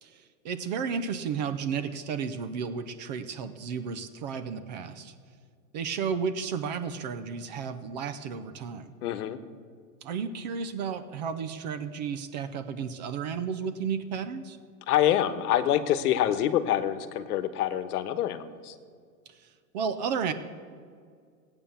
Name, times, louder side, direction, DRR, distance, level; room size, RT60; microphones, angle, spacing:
voice 1, 0.0-5.1 5.7-8.9 10.0-14.6 19.3-20.3, right 6 dB, 30° right, 11 dB, 0.4 m, -33 dB
voice 2, 9.0-9.4 14.9-18.7, left 11 dB, 70° left, 12 dB, 1.2 m, -26 dB
17.5 x 8.8 x 6.9 m, 2.1 s
supercardioid pair, 155°, 48 cm